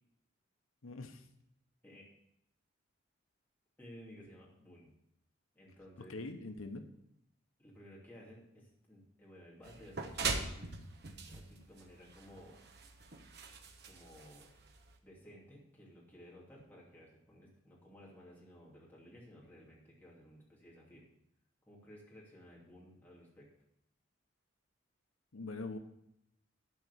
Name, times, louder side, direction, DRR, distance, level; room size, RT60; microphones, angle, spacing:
voice 1, 0.8-1.3 6.1-6.8 25.3-25.8, left 2 dB, 85° left, 6 dB, 0.9 m, -43 dB
voice 2, 3.8-4.9 5.5-6.1 7.6-10.7 11.3-12.6 13.8-14.5 15.0-21.1 21.6-23.5, equal, 10° left, -5 dB, 2.8 m, -56 dB
sound 1, 9.6-15.0, right 4 dB, 50° right, 1.1 m, -42 dB
12.0 x 4.7 x 8.3 m, 0.78 s
head